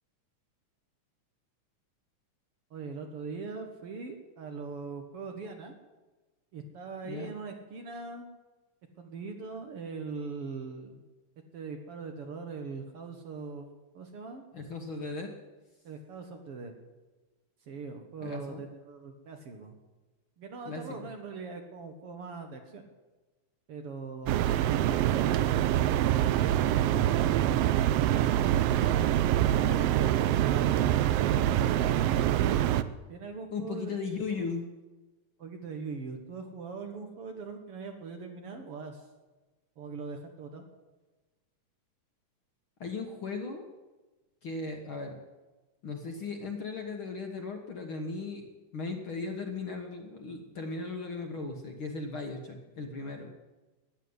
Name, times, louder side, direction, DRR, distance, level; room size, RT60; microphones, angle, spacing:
voice 1, 2.7-5.7 6.5-8.3 9.0-11.0 11.5-14.4 15.8-16.7 17.6-19.8 20.4-22.9 23.7-24.6 29.4-32.6 33.1-34.0 34.3-34.5 35.4-39.0 39.8-40.7, right 4 dB, 55° right, 4 dB, 2.0 m, -41 dB
voice 2, 14.5-15.3 18.2-18.6 20.7-21.1 33.5-34.7 42.8-43.7 44.4-45.2 45.8-48.4 48.7-53.3, left 4 dB, 50° left, 3 dB, 1.9 m, -37 dB
sound 1, 24.3-32.8, right 12 dB, 90° right, 1.3 m, -25 dB
13.5 x 10.5 x 9.6 m, 1.2 s
omnidirectional pair, 3.5 m